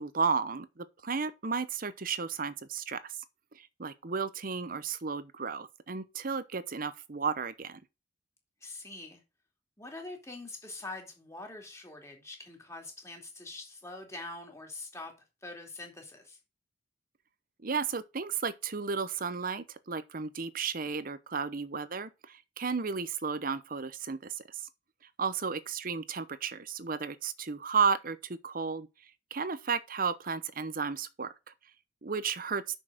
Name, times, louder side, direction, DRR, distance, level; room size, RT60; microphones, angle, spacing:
voice 1, 0.0-3.1 3.5-7.8 17.6-24.6 25.2-28.9 29.3-31.3 32.0-32.6, right 5 dB, 50° right, 0.8 m, -33 dB
voice 2, 8.6-9.2 9.8-15.1 15.4-16.4, left 2 dB, 15° left, 2.6 m, -44 dB
6.5 x 6.2 x 6.5 m
head